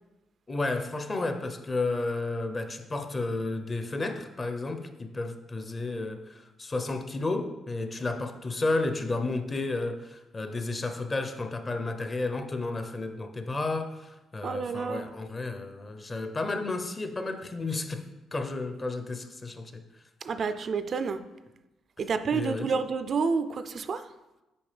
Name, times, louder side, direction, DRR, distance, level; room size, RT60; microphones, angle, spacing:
voice 1, 0.5-18.0 18.3-19.8 22.3-22.7, left 2 dB, 30° left, 8 dB, 0.6 m, -32 dB
voice 2, 14.4-15.1 20.2-21.2 22.0-24.1, right 5 dB, 50° right, 10 dB, 0.3 m, -29 dB
7.0 x 4.9 x 3.3 m, 1.0 s
cardioid pair, 90°, 0 cm